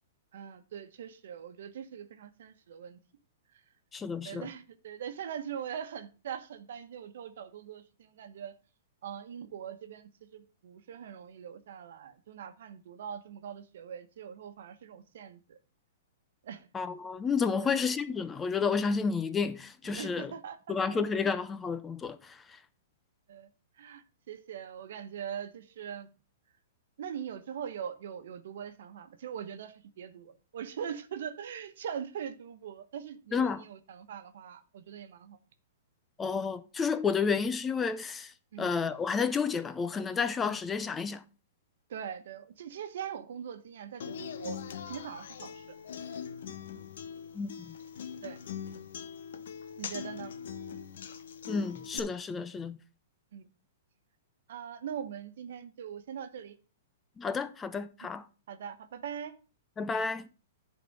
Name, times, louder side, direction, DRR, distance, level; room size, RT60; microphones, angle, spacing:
voice 1, 0.3-3.0 4.2-8.5 9.0-15.6 16.4-16.7 17.6-17.8 19.8-21.3 23.3-23.5 23.8-26.1 27.0-35.4 38.5-38.7 41.9-44.6 44.8-45.6 48.2-48.4 49.8-50.3 53.3-53.4 54.5-56.5 58.5-59.3, right 8 dB, 65° right, 1.2 m, -42 dB
voice 2, 3.9-4.5 16.7-20.3 20.7-22.4 33.3-33.6 36.2-38.3 38.6-41.2 47.3-47.7 51.5-52.8 57.2-58.2 59.8-60.3, left 5 dB, 15° left, 0.5 m, -31 dB
Human voice / Acoustic guitar, 44.0-52.0, left 7 dB, 70° left, 1.0 m, -42 dB
10.5 x 4.2 x 5.4 m
hypercardioid pair, 145°, 0 cm